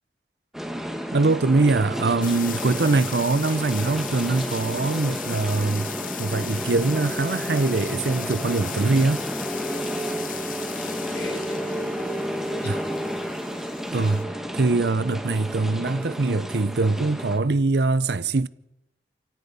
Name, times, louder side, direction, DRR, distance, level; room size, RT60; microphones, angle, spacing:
sound 1, 0.5-17.4, equal, ahead, 2.1 m, -31 dB
voice 1, 1.1-9.2 12.6-12.8 13.9-18.5, right 3 dB, 75° right, 0.7 m, -23 dB
sound 2, 2.2-14.2, left 12 dB, 50° left, 0.8 m, -38 dB
voice 2, 11.1-13.1, left 1 dB, 70° left, 4.9 m, -41 dB
27.5 x 17.5 x 5.6 m
head